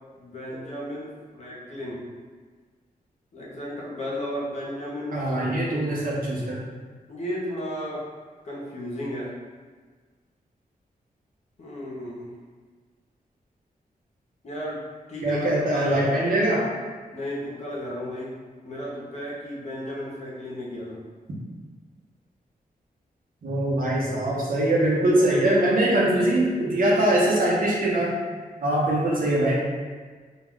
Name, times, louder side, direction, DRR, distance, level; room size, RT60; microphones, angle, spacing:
voice 1, 0.2-2.1 3.3-6.0 7.1-8.0 8.4-9.3 11.6-12.4 14.4-14.8 15.1-16.3 17.1-18.3 18.6-21.0 25.3-25.7, equal, 45° left, -5 dB, 0.7 m, -33 dB
voice 2, 5.1-6.6 15.2-16.6 23.4-28.2 28.6-29.5, right 1 dB, 65° right, -5 dB, 0.7 m, -22 dB
2.3 x 2.2 x 3.6 m, 1.5 s
wide cardioid pair, 120°, 16 cm